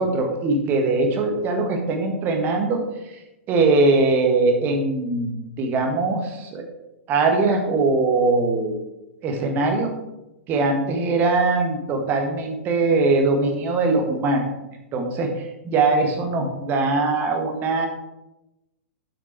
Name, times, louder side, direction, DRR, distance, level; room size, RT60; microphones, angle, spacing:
voice 1, 0.0-3.2 3.5-6.7 7.1-8.7 9.2-9.9 10.5-14.4 14.9-17.9, right 3 dB, 30° right, 3 dB, 1.5 m, -21 dB
7.5 x 6.0 x 4.5 m, 0.95 s
figure-of-eight pair, 105°, 7 cm